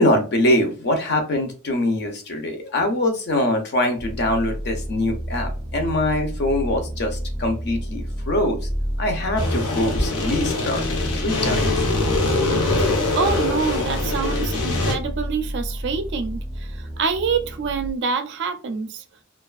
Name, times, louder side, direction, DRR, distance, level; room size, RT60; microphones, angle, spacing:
voice 1, 0.0-8.6 9.0-11.7, left 1 dB, 50° left, 0.6 m, -23 dB
sound 1, 4.0-17.9, equal, 5° left, 0.5 m, -31 dB
sound 2, 9.4-14.9, left 2 dB, 85° left, 0.7 m, -23 dB
voice 2, 13.1-19.0, right 5 dB, 55° right, 0.4 m, -26 dB
2.5 x 2.3 x 2.3 m
head